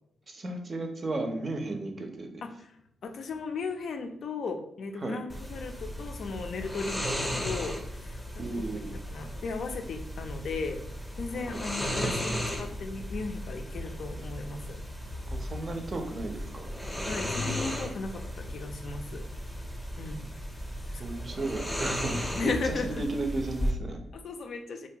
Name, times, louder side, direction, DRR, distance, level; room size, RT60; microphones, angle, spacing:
voice 1, 0.3-2.4 5.0-5.2 8.4-9.0 11.5-11.6 15.3-16.7 21.0-24.0, right 2 dB, 45° right, 4 dB, 0.5 m, -34 dB
voice 2, 3.0-8.2 8.5-10.8 11.2-14.8 17.1-19.3 20.0-20.2 20.9-21.2 22.3-23.0 24.1-24.9, left 4 dB, 70° left, 6 dB, 0.3 m, -36 dB
sound 1, 5.3-23.7, equal, 10° left, 0.6 m, -35 dB
2.5 x 2.2 x 2.7 m, 0.79 s
cardioid pair, 65°, 0 cm